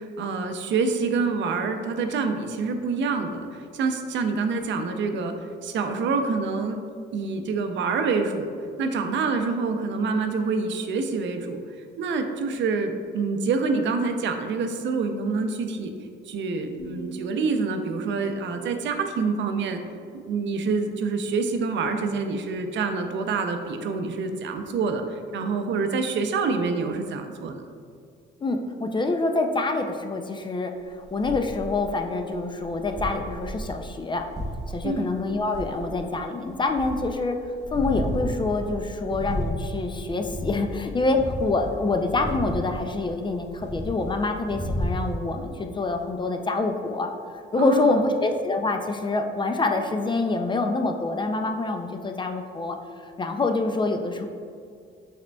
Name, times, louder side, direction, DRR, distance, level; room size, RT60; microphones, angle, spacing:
voice 1, 0.0-5.3 5.6-6.8 7.1-8.5 8.8-11.6 12.0-15.9 16.3-19.8 20.1-27.6 34.8-35.1 47.6-48.0, right 4 dB, 65° right, 6 dB, 0.5 m, -26 dB
sound 1, 16.8-21.9, right 3 dB, 75° left, 0.9 m, -46 dB
voice 2, 28.4-34.2 34.7-37.4 37.7-47.1 47.5-52.8 53.2-54.3, left 3 dB, 25° left, 5 dB, 0.3 m, -26 dB
sound 2, 31.0-31.9 32.5-36.2 36.5-37.2 37.6-43.1 43.4-45.2, equal, ahead, 1.1 m, -33 dB
4.9 x 4.3 x 2.2 m, 2.3 s
cardioid pair, 90°, 20 cm